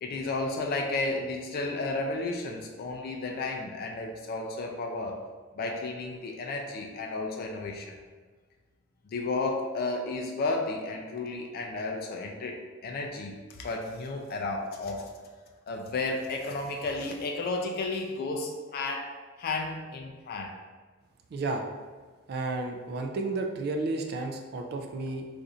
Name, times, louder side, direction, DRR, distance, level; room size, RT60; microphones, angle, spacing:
voice 1, 0.0-5.2 5.5-8.0 9.1-15.1 15.7-20.6, left 3 dB, 45° left, 1 dB, 0.3 m, -33 dB
voice 2, 21.3-21.7 22.3-25.3, right 2 dB, 50° right, 3 dB, 0.3 m, -32 dB
2.5 x 2.5 x 4.1 m, 1.4 s
head